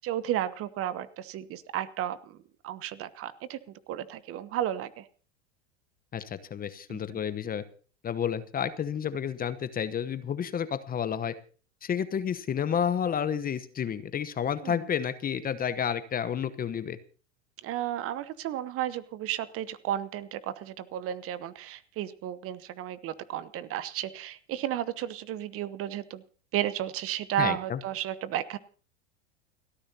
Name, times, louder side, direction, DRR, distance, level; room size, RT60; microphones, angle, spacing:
voice 1, 0.0-2.4 2.6-3.6 3.9-5.1 6.9-7.0 14.6-14.8 17.6-26.2 26.5-28.6, right 11 dB, 40° right, 15 dB, 1.0 m, -33 dB
voice 2, 6.1-7.6 8.0-11.3 11.8-17.0 27.4-27.8, left 8 dB, 25° left, 13 dB, 1.0 m, -30 dB
29.5 x 10.0 x 2.8 m, 0.40 s
hypercardioid pair, 90°, 35 cm